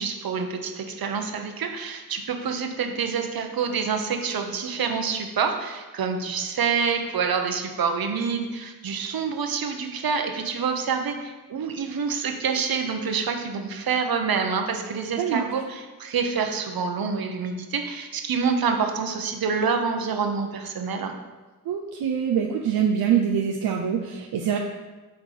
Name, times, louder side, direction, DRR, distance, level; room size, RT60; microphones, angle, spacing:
voice 1, 0.0-21.1, right 5 dB, 70° right, 5 dB, 1.1 m, -27 dB
voice 2, 21.7-24.6, right 8 dB, 85° right, 2 dB, 0.7 m, -24 dB
9.0 x 3.5 x 6.7 m, 1.2 s
cardioid pair, 55°, 37 cm